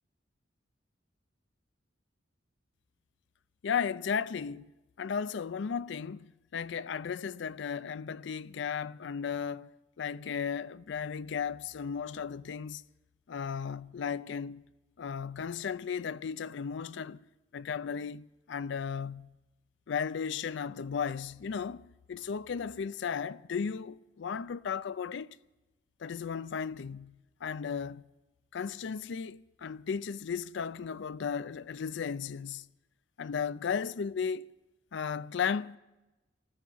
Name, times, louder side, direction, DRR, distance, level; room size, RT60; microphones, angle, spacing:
voice 1, 3.6-4.7 5.0-9.7 10.0-12.8 13.3-14.6 15.0-17.2 17.5-19.4 19.9-25.4 26.0-28.0 28.5-32.7 33.2-34.5 34.9-35.8, left 6 dB, 65° left, 0.4 m, -35 dB
15.0 x 13.5 x 5.7 m
head